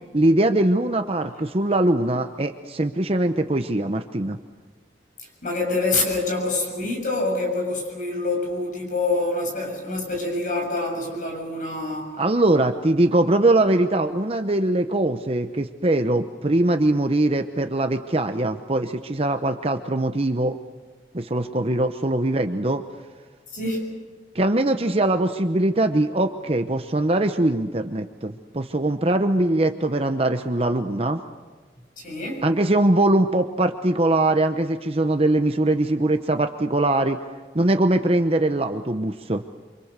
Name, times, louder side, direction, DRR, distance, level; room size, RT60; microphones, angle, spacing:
voice 1, 0.1-4.4 12.2-20.6 21.1-22.8 24.3-31.2 32.4-37.2 37.5-39.4, right 1 dB, 35° right, 7 dB, 0.9 m, -22 dB
voice 2, 5.2-12.2 23.5-24.0 32.0-32.4, left 2 dB, 50° left, 0 dB, 7.4 m, -26 dB
28.5 x 25.0 x 6.8 m, 1.4 s
head